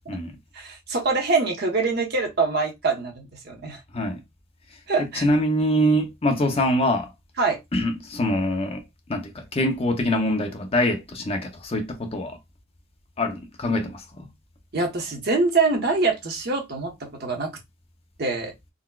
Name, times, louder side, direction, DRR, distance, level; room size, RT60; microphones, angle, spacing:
voice 1, 0.5-3.8 4.9-5.3 7.4-7.6 14.7-17.5 18.2-18.5, right 3 dB, 50° right, 0.9 m, -24 dB
voice 2, 5.0-7.1 7.7-8.8 9.1-12.4 13.2-14.3, left 1 dB, 30° left, 0.5 m, -24 dB
3.9 x 2.2 x 2.2 m
head